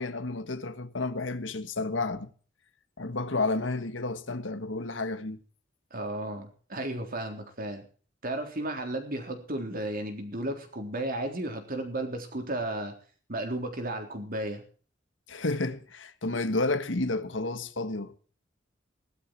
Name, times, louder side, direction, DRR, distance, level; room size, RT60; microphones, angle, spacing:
voice 1, 0.0-2.3 3.0-5.4 15.3-18.1, left 2 dB, 85° left, 1.6 m, -31 dB
voice 2, 5.9-7.8 8.2-13.0 13.3-14.6, right 1 dB, 50° right, 3.7 m, -34 dB
17.5 x 12.5 x 4.6 m
head